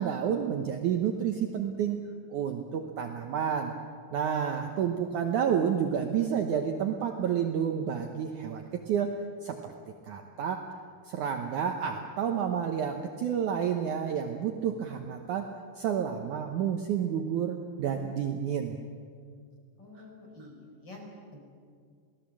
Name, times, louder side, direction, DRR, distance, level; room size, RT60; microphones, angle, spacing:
voice 1, 0.0-2.0 2.3-3.7 4.1-9.7 10.0-10.7 11.1-15.5 15.8-18.8 20.4-20.5, right 8 dB, 70° right, 4 dB, 2.1 m, -30 dB
voice 2, 19.8-21.0 21.3-21.4, left 2 dB, 30° left, 0 dB, 5.1 m, -49 dB
28.0 x 18.5 x 7.5 m, 2.1 s
omnidirectional pair, 4.4 m